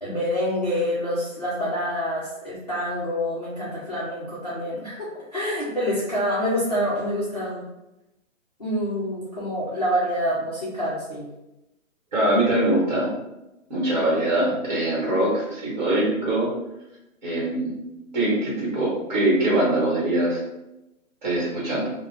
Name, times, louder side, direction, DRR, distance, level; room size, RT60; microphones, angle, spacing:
voice 1, 0.0-7.6 8.6-11.3, equal, 30° left, -10 dB, 0.4 m, -27 dB
voice 2, 12.1-13.1 13.7-16.5 17.2-20.4 21.2-21.9, right 1 dB, 35° right, -5 dB, 1.1 m, -23 dB
2.4 x 2.0 x 3.7 m, 0.93 s
hypercardioid pair, 170°, 41 cm